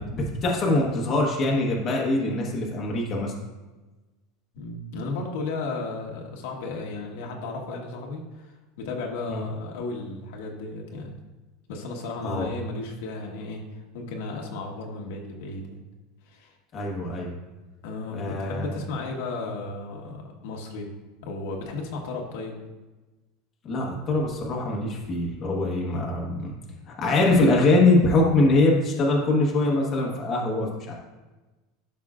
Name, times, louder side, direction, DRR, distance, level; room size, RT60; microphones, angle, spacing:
voice 1, 0.0-3.3 9.3-9.4 12.2-12.5 16.7-17.4 18.1-18.7 23.6-26.5 26.9-30.9, left 2 dB, 25° left, -2 dB, 1.2 m, -23 dB
voice 2, 4.5-11.1 11.7-15.8 16.3-16.5 17.8-20.9 21.2-22.6, left 3 dB, 70° left, 0 dB, 1.3 m, -34 dB
12.0 x 5.5 x 2.5 m, 1.2 s
supercardioid pair, 175°, 0 cm